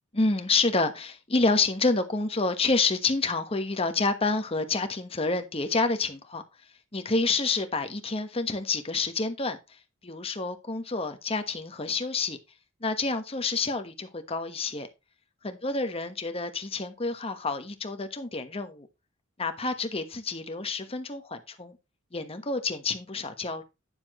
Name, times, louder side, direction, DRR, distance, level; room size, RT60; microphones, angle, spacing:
voice 1, 0.1-6.4 6.9-12.4 12.8-14.9 15.4-18.9 19.4-21.8 22.1-23.6, left 3 dB, 30° left, 1.2 m, -28 dB
9.9 x 7.0 x 3.0 m
head